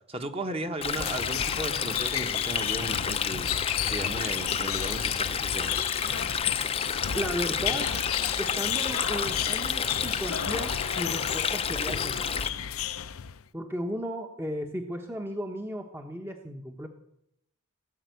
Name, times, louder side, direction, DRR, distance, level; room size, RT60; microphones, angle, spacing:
voice 1, 0.1-3.5 3.9-5.8, right 2 dB, 25° right, 6 dB, 1.3 m, -35 dB
Stream, 0.8-12.5, left 7 dB, 25° left, 0.6 m, -30 dB
sound 1, 1.0-13.4, left 9 dB, 80° left, 0.7 m, -33 dB
voice 2, 7.1-7.9 8.4-12.3 13.5-16.9, equal, 10° right, 4 dB, 1.0 m, -35 dB
17.5 x 7.4 x 9.3 m, 0.78 s
head